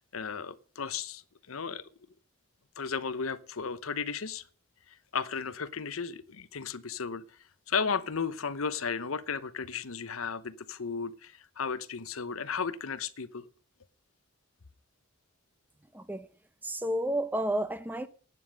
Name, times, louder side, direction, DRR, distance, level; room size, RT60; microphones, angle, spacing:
voice 1, 0.1-1.2 1.5-1.9 2.8-4.4 5.1-7.2 7.7-13.5, left 5 dB, 90° left, 0.9 m, -34 dB
voice 2, 15.9-16.3 16.6-18.1, right 1 dB, 10° right, 0.8 m, -31 dB
11.0 x 9.4 x 6.6 m
head